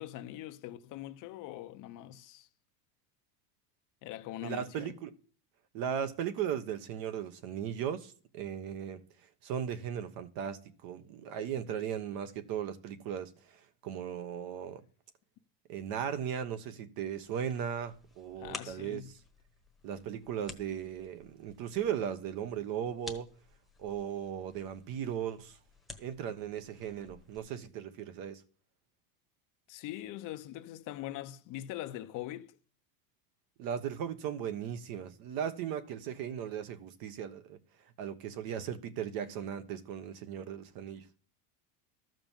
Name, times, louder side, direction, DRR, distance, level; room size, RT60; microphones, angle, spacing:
voice 1, 0.0-2.5 4.0-4.9 18.4-19.1 29.7-32.5, left 14 dB, 45° left, 0.8 m, -42 dB
voice 2, 4.4-5.1 5.7-9.0 9.4-13.3 13.8-14.8 15.7-19.0 19.8-23.3 23.8-25.6 26.0-28.4 33.6-37.6 38.0-41.1, right 9 dB, 50° right, 1.3 m, -37 dB
sound 1, 17.2-27.4, left 2 dB, ahead, 1.2 m, -52 dB
13.0 x 5.3 x 7.3 m
supercardioid pair, 140°, 46 cm